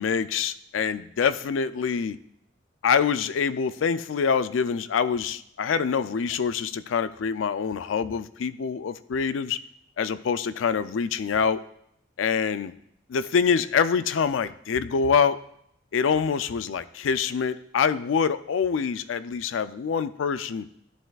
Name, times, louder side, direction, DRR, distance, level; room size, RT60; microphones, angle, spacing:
voice 1, 0.0-2.2 2.8-9.6 10.0-11.6 12.2-12.7 13.1-15.4 15.9-20.7, left 6 dB, 85° left, 14 dB, 0.4 m, -25 dB
13.0 x 7.7 x 2.3 m, 0.73 s
head